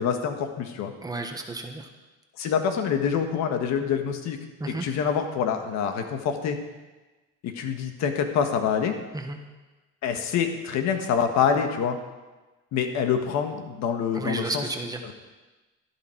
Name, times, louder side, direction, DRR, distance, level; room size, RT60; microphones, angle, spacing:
voice 1, 0.0-0.9 2.4-4.4 4.7-6.6 7.4-9.0 10.0-12.0 12.7-14.6, left 7 dB, 70° left, 6 dB, 1.6 m, -26 dB
voice 2, 1.0-1.9 4.6-4.9 9.1-9.4 14.1-15.1, right 2 dB, 15° right, 4 dB, 1.3 m, -32 dB
12.5 x 11.5 x 4.6 m, 1.2 s
cardioid pair, 130°, 29 cm